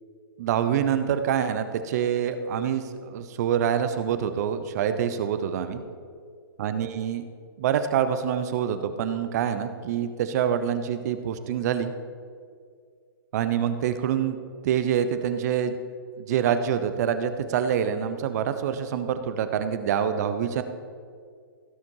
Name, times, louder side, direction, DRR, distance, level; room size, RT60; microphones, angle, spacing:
voice 1, 0.4-5.8 6.6-7.2 7.6-11.9 13.3-14.4 14.6-15.8 16.2-20.6, right 8 dB, 45° right, 10 dB, 0.8 m, -26 dB
16.0 x 5.9 x 4.7 m, 2.1 s
hypercardioid pair, 140°, 12 cm